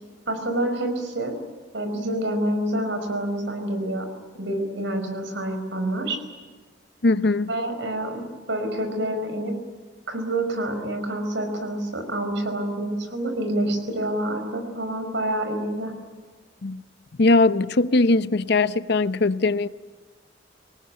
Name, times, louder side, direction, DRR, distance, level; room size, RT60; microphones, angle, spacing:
voice 1, 0.3-1.3 1.7-4.1 4.3-6.2 7.5-8.2 8.5-9.5 10.1-15.9, right 1 dB, 70° right, 5.1 m, -27 dB
voice 2, 7.0-7.5 16.6-16.8 17.2-19.7, left 2 dB, 60° left, 0.8 m, -20 dB
25.5 x 19.0 x 9.9 m
head